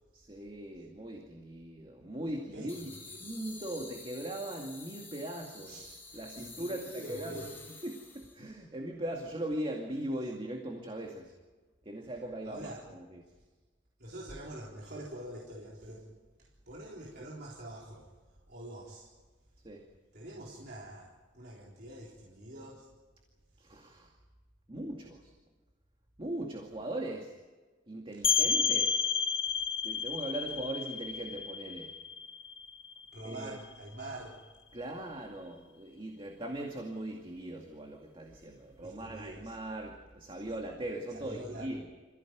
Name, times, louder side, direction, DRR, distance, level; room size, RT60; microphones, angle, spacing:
voice 1, 0.1-5.8 6.1-7.5 7.8-11.3 11.9-13.2 19.6-19.8 23.6-24.1 24.7-25.3 26.2-27.3 27.9-29.0 29.8-31.9 33.2-33.6 34.7-41.9, right 1 dB, 30° right, 1 dB, 2.3 m, -40 dB
sound 1, 2.7-8.4, left 3 dB, 10° left, 5.2 m, -49 dB
voice 2, 5.7-7.5 12.5-12.8 14.0-16.1 16.4-18.1 18.5-19.1 20.1-22.9 33.1-34.4 38.8-39.5 41.1-41.7, right 1 dB, 60° right, -4 dB, 4.0 m, -45 dB
sound 2, 28.2-33.7, left 6 dB, 30° left, 1.1 m, -31 dB
27.5 x 15.5 x 9.4 m, 1.3 s
head